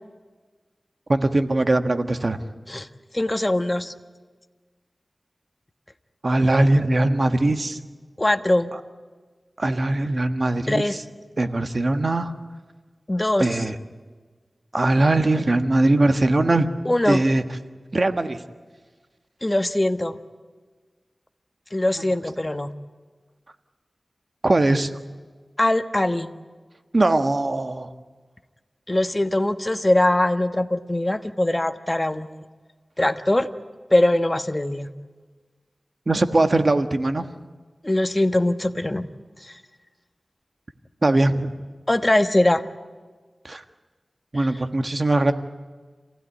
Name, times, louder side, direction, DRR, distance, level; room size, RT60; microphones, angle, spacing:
voice 1, 1.1-2.4 6.2-7.8 8.7-8.8 9.6-10.8 11.4-12.3 13.4-13.8 14.7-16.7 17.1-17.4 17.9-18.4 22.0-22.1 24.4-24.9 26.9-27.9 36.1-37.3 41.0-41.5 43.4-43.6 44.3-45.3, right 2 dB, 50° right, 8 dB, 1.5 m, -20 dB
voice 2, 3.1-3.9 8.2-8.7 10.7-11.0 13.1-13.5 16.8-17.2 19.4-20.2 21.7-22.7 25.6-26.3 28.9-32.4 33.0-33.5 33.9-34.9 37.8-39.1 39.4-39.6 41.9-42.6 44.3-44.5, left 1 dB, 25° left, 9 dB, 1.3 m, -22 dB
27.5 x 16.5 x 9.8 m, 1.4 s
wide cardioid pair, 50°, 0 cm